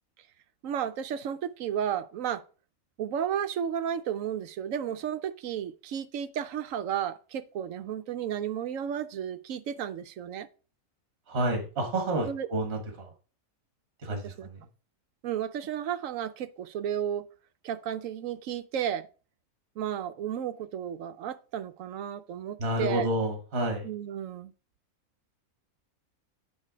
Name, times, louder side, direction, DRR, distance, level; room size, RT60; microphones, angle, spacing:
voice 1, 0.6-2.4 3.0-10.5 12.3-12.5 14.1-14.5 15.2-17.3 17.6-19.1 19.8-23.1 23.8-24.5, right 9 dB, 75° right, 1.0 m, -33 dB
voice 2, 11.3-13.1 14.0-14.6 22.6-23.9, right 1 dB, 50° right, 1.8 m, -30 dB
8.8 x 4.0 x 4.9 m
omnidirectional pair, 1.5 m